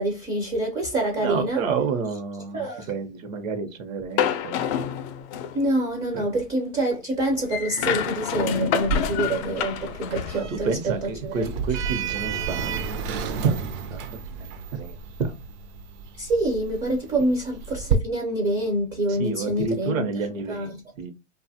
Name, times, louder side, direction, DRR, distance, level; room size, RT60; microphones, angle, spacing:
voice 1, 0.0-1.6 2.5-2.9 5.5-11.4 16.2-20.1 20.5-20.8, right 1 dB, 15° right, 0.4 m, -26 dB
voice 2, 1.1-4.6 6.1-6.3 10.3-13.1 13.4-13.5 13.9-15.3 19.1-20.7 21.0-21.1, right 5 dB, 80° right, 0.9 m, -29 dB
sound 1, 4.2-5.7 7.5-10.4, left 9 dB, 60° left, 0.5 m, -27 dB
Sliding door, 8.8-17.9, right 6 dB, 65° right, 0.6 m, -32 dB
2.7 x 2.4 x 2.6 m
supercardioid pair, 140°, 39 cm